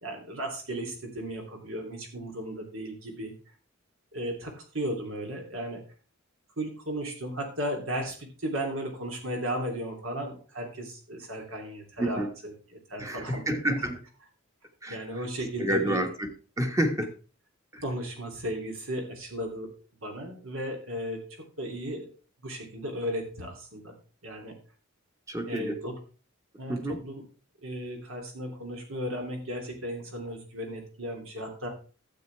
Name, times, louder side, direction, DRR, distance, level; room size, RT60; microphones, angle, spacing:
voice 1, 0.0-3.3 4.1-5.8 6.6-13.6 14.9-16.1 17.8-19.7 20.0-21.3 21.6-22.1 22.4-23.9 24.2-24.5 25.5-26.0 26.6-27.2 27.6-31.7, equal, 70° right, 2 dB, 2.9 m, -35 dB
voice 2, 12.0-12.3 13.0-14.0 14.8-15.0 15.6-16.3 16.6-17.1 17.7-17.8 25.3-25.8 26.7-27.0, right 1 dB, 15° right, 5 dB, 1.3 m, -29 dB
12.0 x 8.0 x 3.3 m, 0.37 s
head